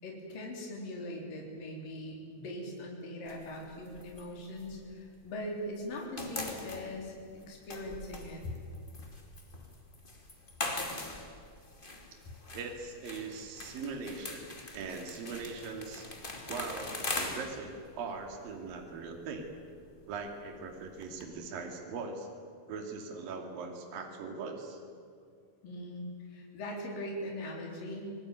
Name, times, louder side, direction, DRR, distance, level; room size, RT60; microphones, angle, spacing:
voice 1, 0.0-8.5 25.6-28.1, left 1 dB, 60° left, 0 dB, 5.4 m, -41 dB
sound 1, 3.3-5.5 5.8-21.2, left 2 dB, 15° left, 1.8 m, -42 dB
voice 2, 12.5-14.4 14.7-16.1 16.5-19.5 20.1-22.3 22.7-24.8, right 4 dB, 65° right, 3 dB, 4.1 m, -40 dB
26.5 x 19.0 x 9.3 m, 2.2 s
omnidirectional pair, 4.5 m